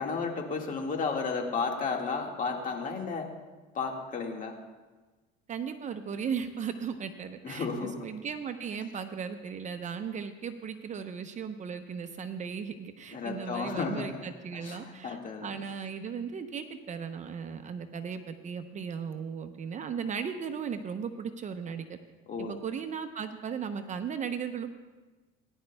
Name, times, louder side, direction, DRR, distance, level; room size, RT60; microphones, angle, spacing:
voice 1, 0.0-3.3 3.7-4.5 7.4-8.0 13.1-14.2 14.5-15.5 22.3-22.6, left 4 dB, 40° left, 2 dB, 1.8 m, -33 dB
voice 2, 5.5-22.0 22.4-24.7, right 6 dB, 35° right, 8 dB, 0.7 m, -36 dB
19.0 x 10.5 x 2.3 m, 1.2 s
supercardioid pair, 105°, 21 cm